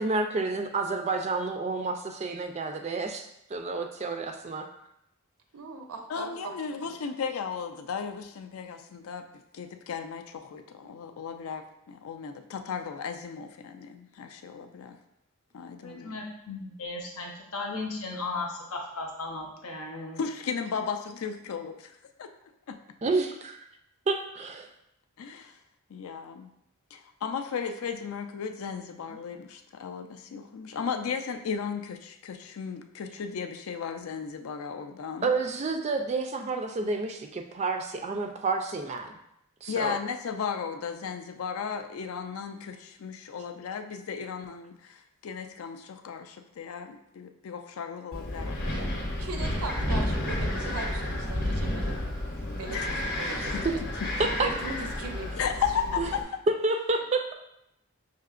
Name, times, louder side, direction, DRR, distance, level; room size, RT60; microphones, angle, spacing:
voice 1, 0.0-4.7 23.0-23.6 24.1-24.7 35.2-39.1 39.6-40.0 53.6-53.7 54.2-54.3 56.0-56.1 56.5-57.3, right 3 dB, 30° right, 5 dB, 0.3 m, -29 dB
voice 2, 5.5-7.0 49.2-51.9 52.6-53.8 54.4-55.3 55.9-56.0, right 3 dB, 85° right, 4 dB, 0.6 m, -39 dB
voice 3, 6.1-9.3 9.5-15.0 15.5-16.2 20.2-21.8 22.2-22.3 22.7-22.8 25.2-25.5 25.9-26.5 26.9-35.3 39.7-48.9 52.7-52.9 53.4-53.6 55.4-56.3, left 6 dB, 70° left, 7 dB, 0.4 m, -35 dB
voice 4, 15.8-20.2, left 3 dB, 90° left, 0 dB, 0.8 m, -36 dB
Wind, 48.1-56.2, left 1 dB, 45° left, 0.7 m, -31 dB
5.7 x 2.8 x 2.4 m, 0.81 s
head